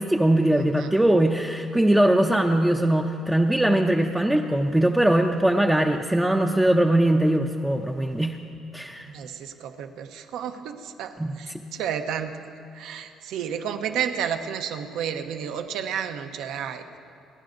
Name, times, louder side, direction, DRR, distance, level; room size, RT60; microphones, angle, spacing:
voice 1, 0.0-8.4 8.7-9.1 11.2-11.4, right 1 dB, 5° right, 1 dB, 0.5 m, -21 dB
voice 2, 0.5-0.9 9.1-12.4 12.7-16.9, right 8 dB, 75° right, 7 dB, 0.8 m, -31 dB
29.5 x 10.5 x 2.6 m, 2.7 s
cardioid pair, 120°, 0 cm